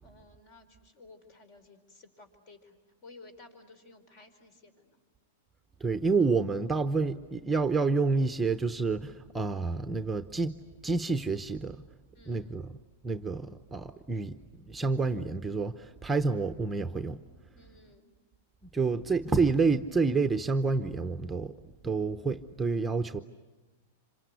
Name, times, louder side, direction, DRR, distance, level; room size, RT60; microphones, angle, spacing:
voice 1, 0.0-5.0 12.1-12.7 17.5-18.1, left 3 dB, 50° left, 9 dB, 4.6 m, -55 dB
voice 2, 5.8-10.6 10.8-11.8 12.3-12.7 13.0-14.4 14.6-17.2 18.7-21.5 21.8-23.2, right 4 dB, 10° right, 8 dB, 0.8 m, -28 dB
27.0 x 25.5 x 8.3 m, 1.2 s
hypercardioid pair, 140°, 0 cm